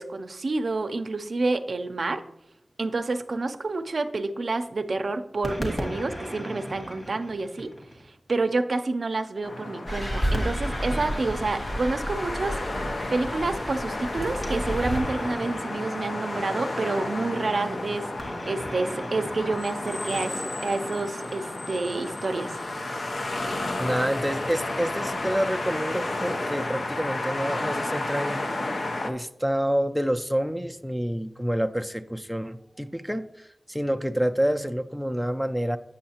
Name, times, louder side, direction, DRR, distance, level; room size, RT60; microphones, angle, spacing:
voice 1, 0.0-2.2 2.8-7.7 8.3-18.1 18.4-22.6, right 3 dB, 80° right, 8 dB, 0.4 m, -29 dB
sound 1, 5.4-8.1 10.3-12.7 14.3-16.8 18.2-20.6, equal, 45° left, 1.9 m, -37 dB
sound 2, 9.4-29.1, left 2 dB, 85° left, 0.6 m, -32 dB
sound 3, 9.9-15.0, equal, 70° left, 3.0 m, -31 dB
voice 2, 23.8-28.4 29.0-35.8, equal, ahead, 6 dB, 0.3 m, -28 dB
8.5 x 6.4 x 2.8 m, 0.80 s
wide cardioid pair, 60°, 0 cm